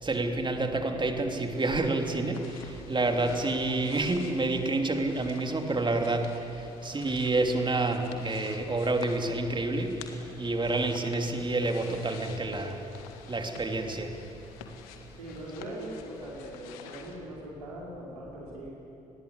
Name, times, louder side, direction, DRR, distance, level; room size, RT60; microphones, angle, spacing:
voice 1, 0.0-6.3 6.6-12.8 13.3-14.1, right 2 dB, 25° right, 4 dB, 3.1 m, -29 dB
sound 1, 1.5-17.2, left 7 dB, 70° left, 1.8 m, -49 dB
voice 2, 2.9-3.3 15.2-18.7, right 1 dB, 80° right, -4 dB, 4.8 m, -41 dB
27.5 x 21.0 x 8.4 m, 2.9 s
figure-of-eight pair, 45°, 19 cm